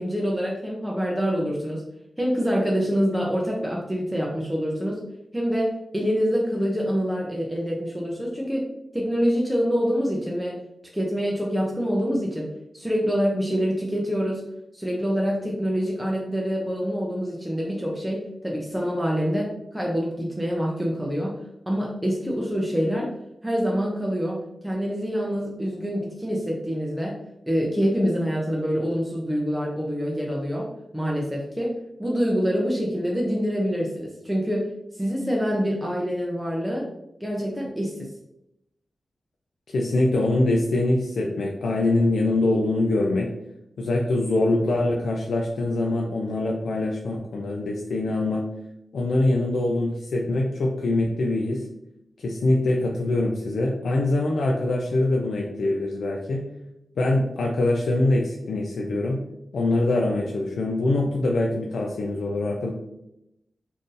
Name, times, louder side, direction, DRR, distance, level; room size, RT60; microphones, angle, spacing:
voice 1, 0.0-1.8 2.2-5.0 5.3-10.6 10.9-12.5 12.7-14.4 14.7-21.3 21.7-23.1 23.4-24.4 24.6-27.1 27.5-30.7 30.9-34.7 34.9-36.8 37.2-38.1, equal, 5° right, -3 dB, 0.5 m, -26 dB
voice 2, 39.7-43.3 43.8-48.4 48.9-51.6 52.2-56.4 57.0-59.2 59.5-62.7, left 2 dB, 85° left, -1 dB, 0.4 m, -23 dB
2.6 x 2.5 x 3.7 m, 0.84 s
wide cardioid pair, 110°, 0 cm